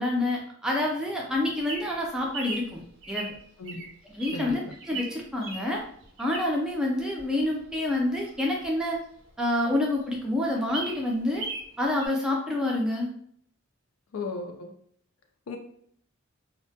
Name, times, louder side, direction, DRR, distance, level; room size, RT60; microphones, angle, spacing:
voice 1, 0.0-2.8 3.1-3.3 4.1-4.6 4.9-5.8 6.2-9.0 9.4-11.4 11.8-13.1, left 1 dB, 5° right, -3 dB, 0.4 m, -27 dB
Bird vocalization bird call bird song, 1.3-6.7 7.2-9.3 9.7-9.8 10.0-10.1 10.5-11.7 12.0-12.1, right 3 dB, 65° right, 0.5 m, -38 dB
voice 2, 14.1-14.7 15.5-15.6, left 3 dB, 80° left, 4 dB, 0.4 m, -35 dB
2.1 x 2.1 x 2.7 m, 0.64 s
head